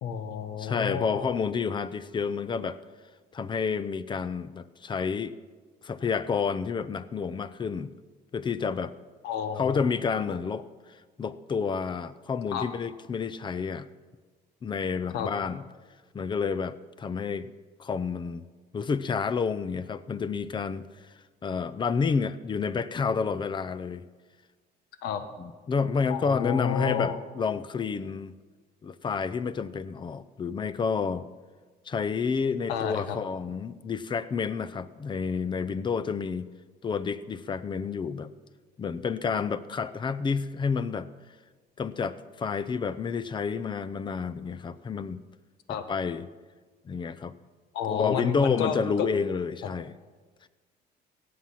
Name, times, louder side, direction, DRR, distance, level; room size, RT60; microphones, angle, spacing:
voice 1, 0.0-1.3 9.2-9.9 10.3-10.4 12.5-12.6 15.1-15.3 25.0-25.2 26.1-27.2 32.7-33.2 45.7-45.9 47.7-49.1, left 7 dB, 85° left, 9 dB, 1.2 m, -31 dB
voice 2, 0.6-2.8 3.3-5.3 5.8-7.9 8.3-8.9 9.6-10.7 11.2-13.9 14.6-15.6 16.1-17.5 17.8-18.4 18.7-20.9 21.4-24.0 25.4-28.3 28.8-31.3 31.9-36.5 36.8-38.3 38.8-41.1 41.8-45.2 45.7-46.3 46.9-47.3 47.9-49.9, left 5 dB, 30° left, 16 dB, 0.6 m, -29 dB
17.5 x 7.7 x 5.8 m, 1.4 s
cardioid pair, 110°, 17 cm